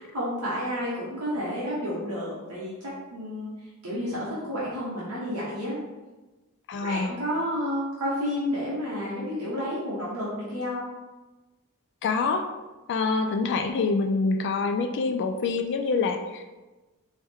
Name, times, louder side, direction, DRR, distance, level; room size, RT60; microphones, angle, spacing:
voice 1, 0.1-3.5 3.8-5.8 6.8-10.9, equal, 75° right, -7 dB, 1.0 m, -30 dB
voice 2, 6.7-7.1 12.0-12.5 12.9-16.6, left 4 dB, 55° left, 6 dB, 0.3 m, -26 dB
4.4 x 2.1 x 3.5 m, 1.2 s
head